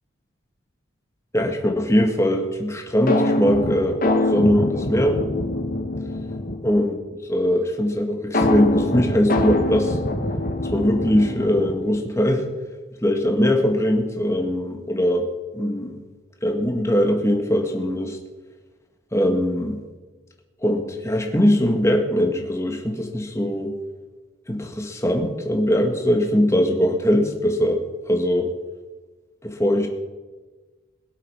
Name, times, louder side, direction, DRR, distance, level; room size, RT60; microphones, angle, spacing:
voice 1, 1.3-5.2 6.6-6.9 7.3-10.0 10.7-12.5 13.0-15.3 15.5-16.0 16.4-18.2 19.1-19.8 20.6-23.8 24.5-27.8 28.1-28.5 29.4-29.9, equal, 15° left, 3 dB, 1.9 m, -21 dB
sound 1, 3.1-6.8 8.3-11.9, left 1 dB, 45° left, 1.6 m, -24 dB
22.0 x 8.1 x 5.8 m, 1.3 s
head